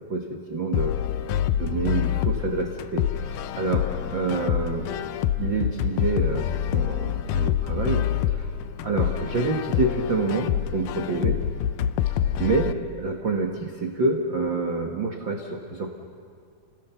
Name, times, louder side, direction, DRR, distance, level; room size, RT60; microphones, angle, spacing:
voice 1, 0.1-0.9 1.6-4.9 5.4-6.4 6.7-8.5 8.8-11.4 12.4-16.0, right 3 dB, 75° right, 2 dB, 1.1 m, -27 dB
sound 1, 0.7-12.7, left 10 dB, 80° left, 1.9 m, -26 dB
29.5 x 17.5 x 6.9 m, 2.3 s
omnidirectional pair, 4.3 m